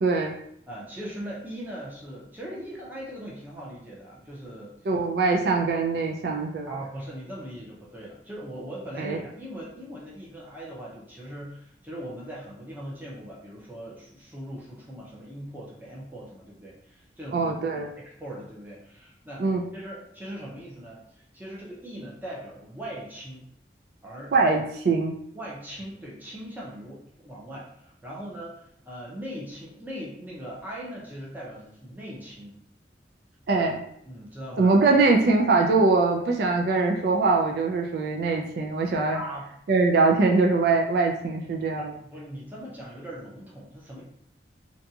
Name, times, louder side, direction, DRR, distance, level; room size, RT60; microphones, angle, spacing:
voice 1, 0.0-0.3 4.9-6.7 9.0-9.2 17.3-17.9 19.4-19.6 24.3-25.2 33.5-33.8 34.6-39.2 39.7-42.0, right 3 dB, 60° right, 1 dB, 0.3 m, -22 dB
voice 2, 0.7-4.7 6.7-17.5 18.0-19.4 19.7-23.4 24.0-24.3 25.3-32.6 34.0-34.7 39.1-39.5 41.7-44.0, equal, 10° right, -5 dB, 0.6 m, -40 dB
2.6 x 2.3 x 2.7 m, 0.71 s
head